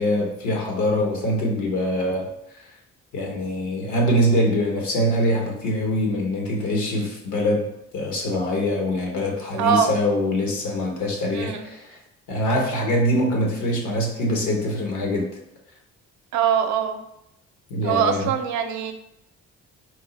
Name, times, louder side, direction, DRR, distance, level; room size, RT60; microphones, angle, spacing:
voice 1, 0.0-2.3 3.1-7.6 7.9-12.0 12.3-15.3 17.7-18.3, left 1 dB, 75° left, 0 dB, 1.2 m, -23 dB
voice 2, 9.6-10.0 11.3-11.7 16.3-17.0 17.8-18.9, right 8 dB, 70° right, 7 dB, 0.5 m, -22 dB
4.5 x 2.1 x 3.9 m, 0.82 s
cardioid pair, 90°, 30 cm